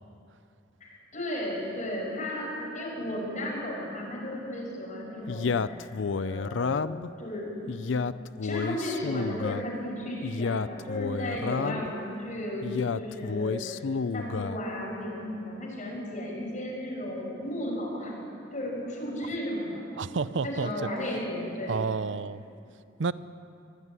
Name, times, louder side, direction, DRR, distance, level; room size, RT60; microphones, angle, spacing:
voice 1, 0.8-6.8 7.2-7.5 7.9-8.0 8.4-12.7 12.9-13.8 14.1-18.2 18.5-19.8 20.4-21.9, left 1 dB, 40° left, -2 dB, 6.3 m, -34 dB
Male speech man speaking, 5.3-7.1 7.7-9.7 10.2-11.9 12.6-14.6, left 5 dB, 85° left, 0.5 m, -30 dB
voice 2, 20.0-20.9 21.7-22.4 23.0-23.1, right 4 dB, 75° right, 15 dB, 0.6 m, -30 dB
23.5 x 12.5 x 9.7 m, 2.7 s
head